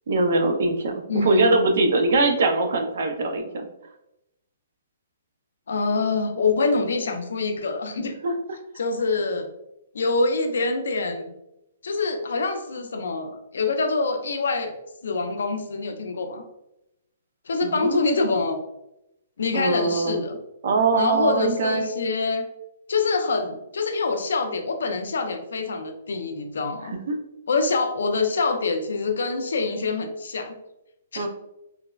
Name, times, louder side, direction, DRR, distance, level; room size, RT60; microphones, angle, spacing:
voice 1, 0.1-3.7 8.2-8.3 17.6-18.1 19.5-20.2 20.6-21.9 26.9-27.2 31.2-31.3, right 3 dB, 50° right, 4 dB, 0.4 m, -22 dB
voice 2, 1.1-1.6 5.7-8.2 8.8-9.5 9.9-11.2 11.8-14.8 15.0-16.4 17.5-18.6 19.4-20.4 21.0-22.4 22.9-26.9 27.5-30.5 31.1-31.3, left 3 dB, 75° left, 6 dB, 0.4 m, -25 dB
3.2 x 2.0 x 2.2 m, 0.85 s
hypercardioid pair, 180°, 0 cm